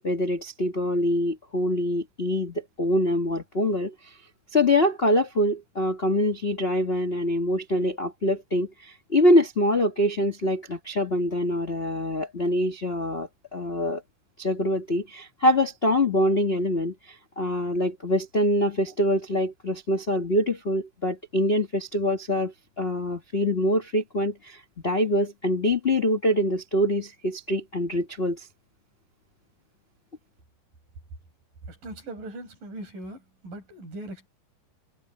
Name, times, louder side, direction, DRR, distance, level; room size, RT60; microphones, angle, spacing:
voice 1, 0.0-4.1 4.5-14.0 14.4-28.5, left 1 dB, 60° left, 0.6 m, -25 dB
voice 2, 31.7-34.3, right 1 dB, 85° right, 9.4 m, -40 dB
omnidirectional pair, 3.7 m